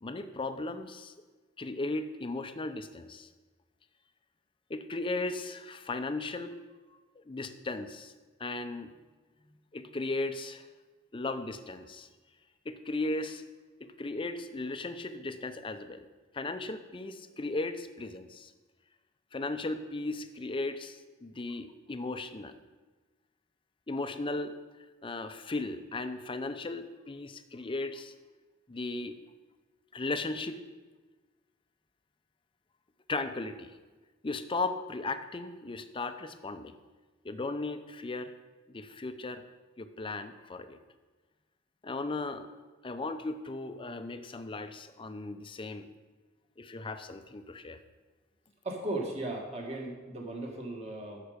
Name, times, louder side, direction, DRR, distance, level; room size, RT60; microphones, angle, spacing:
voice 1, 0.0-1.1 1.6-3.3 4.7-6.5 7.3-8.1 8.4-8.9 9.7-10.7 11.1-12.1 12.7-13.5 13.8-16.1 16.3-18.5 19.3-22.6 23.9-24.6 25.0-28.1 28.7-29.2 29.9-30.6 33.1-33.7 34.2-36.8 37.2-38.3 38.7-39.4 39.8-40.8 41.8-45.9 46.6-47.8, left 2 dB, 25° left, 9 dB, 0.6 m, -36 dB
voice 2, 48.6-51.2, right 2 dB, 30° right, 0 dB, 1.8 m, -36 dB
12.5 x 6.6 x 5.1 m, 1.3 s
head